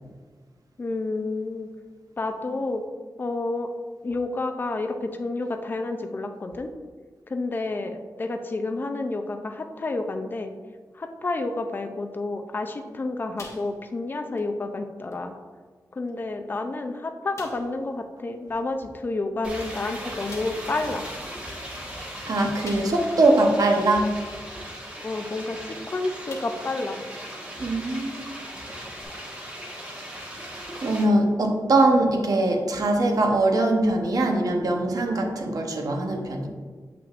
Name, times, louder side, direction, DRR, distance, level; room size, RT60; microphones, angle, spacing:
voice 1, 0.8-1.7 2.2-2.8 3.2-3.7 4.0-6.7 7.3-10.5 10.9-15.4 15.9-21.0 25.0-27.0, left 2 dB, 30° left, 6 dB, 0.4 m, -30 dB
sound 1, 13.4-14.1 14.4-14.5 15.1-15.2 16.1-16.2 16.6-16.7 17.3-17.8 19.4-19.5 20.3-20.7 22.6-23.2 23.7-23.8 25.6-25.8 26.3-26.8 27.2-27.3 29.0-29.1, left 2 dB, 45° left, 0.9 m, -44 dB
sound 2, 19.4-31.0, equal, 20° right, 1.2 m, -38 dB
voice 2, 22.2-24.1 27.6-28.3 30.8-36.5, right 2 dB, 60° right, 2 dB, 0.8 m, -22 dB
7.2 x 5.9 x 2.4 m, 1.5 s
wide cardioid pair, 165°, 7 cm